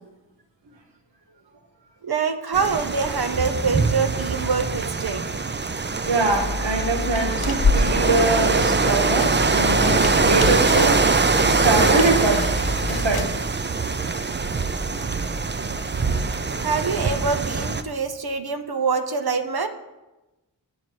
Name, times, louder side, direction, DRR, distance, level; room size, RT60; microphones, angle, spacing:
voice 1, 2.0-5.4 16.6-19.7, right 5 dB, 60° right, 9 dB, 0.8 m, -25 dB
sound 1, 2.5-17.8, right 4 dB, 25° right, 0.5 m, -23 dB
voice 2, 6.0-11.0 11.4-12.5 12.9-13.3, right 2 dB, 90° right, 4 dB, 1.1 m, -23 dB
sound 2, 6.3-13.2, left 3 dB, 55° left, 0.9 m, -27 dB
8.6 x 7.6 x 4.5 m, 1.0 s
wide cardioid pair, 50°, 42 cm